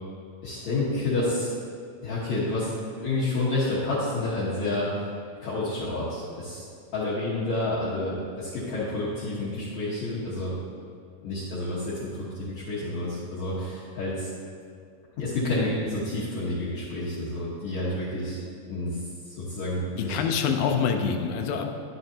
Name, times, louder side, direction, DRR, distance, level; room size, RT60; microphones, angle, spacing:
voice 1, 0.4-1.5 2.0-2.8 3.0-4.9 5.4-6.6 6.9-10.5 11.2-14.3 15.2-18.4 18.7-19.0 19.3-20.2, left 2 dB, 60° left, -9 dB, 2.5 m, -29 dB
voice 2, 20.0-21.7, left 6 dB, 85° left, 4 dB, 2.5 m, -26 dB
11.5 x 10.0 x 2.9 m, 2.3 s
omnidirectional pair, 4.0 m